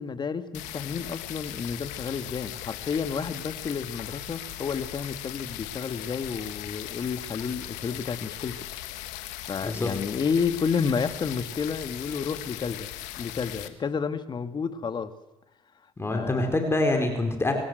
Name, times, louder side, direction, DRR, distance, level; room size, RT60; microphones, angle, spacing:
voice 1, 0.0-8.7 9.4-12.9 13.2-15.1 16.1-16.5, left 6 dB, 40° left, 10 dB, 1.9 m, -31 dB
sound 1, 0.5-13.7, left 14 dB, 85° left, 1.7 m, -38 dB
voice 2, 16.0-17.5, left 2 dB, 20° left, 5 dB, 4.3 m, -25 dB
23.0 x 17.0 x 8.0 m, 0.95 s
supercardioid pair, 80°, 12 cm